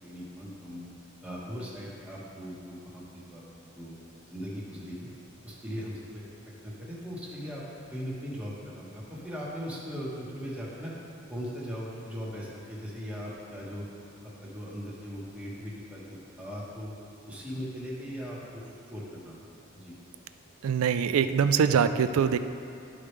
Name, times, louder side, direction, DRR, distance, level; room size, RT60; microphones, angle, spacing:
voice 1, 0.0-0.9 1.2-3.4 3.8-4.0 4.3-5.0 5.4-6.3 6.6-7.6 7.9-10.9 11.3-13.8 14.4-16.0 16.4-16.9 17.3-18.6 18.9-19.4 19.7-19.9, equal, 5° right, -6 dB, 1.3 m, -39 dB
voice 2, 20.6-22.4, right 7 dB, 85° right, 11 dB, 0.4 m, -23 dB
12.5 x 4.8 x 3.3 m, 2.8 s
head